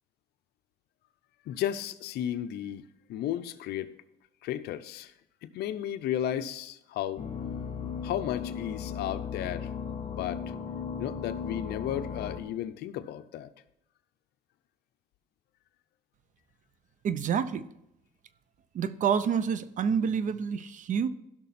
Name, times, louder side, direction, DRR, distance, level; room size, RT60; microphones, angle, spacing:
voice 1, 1.5-3.9 4.4-5.1 5.4-7.3 8.0-9.7 10.1-10.4 11.0-13.5, left 11 dB, 75° left, 0.7 m, -34 dB
sound 1, 7.2-12.4, left 6 dB, 45° left, 1.1 m, -36 dB
voice 2, 17.0-17.6 18.7-21.1, right 7 dB, 50° right, 0.7 m, -28 dB
16.0 x 6.0 x 4.3 m
cardioid pair, 110°, 17 cm